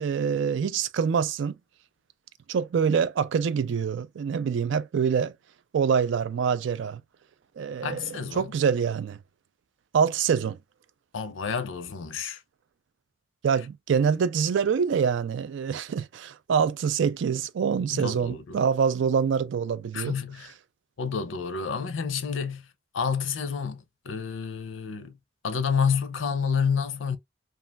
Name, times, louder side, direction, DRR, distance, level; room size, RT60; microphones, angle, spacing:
voice 1, 0.0-1.5 2.5-5.3 5.7-7.0 7.6-9.2 9.9-10.6 13.4-20.1, right 6 dB, 70° right, 0.3 m, -25 dB
voice 2, 7.8-8.5 11.1-12.4 17.9-18.6 19.9-20.5 21.0-22.7 22.9-25.2 25.4-27.2, left 6 dB, 85° left, 0.5 m, -29 dB
3.1 x 2.4 x 2.2 m
head